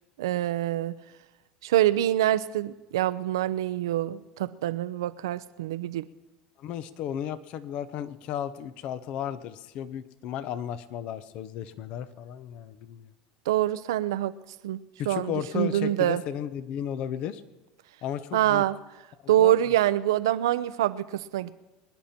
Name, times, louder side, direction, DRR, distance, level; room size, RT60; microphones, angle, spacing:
voice 1, 0.2-1.0 1.6-6.0 13.5-14.3 14.6-16.2 18.3-18.8 19.3-21.5, right 13 dB, 85° right, 14 dB, 0.7 m, -25 dB
voice 2, 6.6-13.1 15.0-17.4 18.0-18.6 19.4-19.7, left 10 dB, 55° left, 14 dB, 0.9 m, -34 dB
24.5 x 10.5 x 4.4 m, 1.1 s
supercardioid pair, 105°, 2 cm